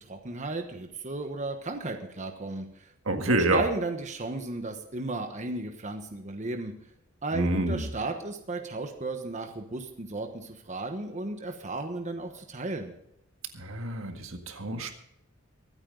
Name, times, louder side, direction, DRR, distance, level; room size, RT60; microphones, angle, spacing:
voice 1, 0.1-6.7 7.2-12.9, right 2 dB, 35° right, 5 dB, 1.2 m, -34 dB
voice 2, 3.1-3.6 7.3-7.9 13.5-14.9, right 1 dB, 75° right, 5 dB, 1.8 m, -28 dB
24.0 x 8.9 x 3.9 m, 0.76 s
head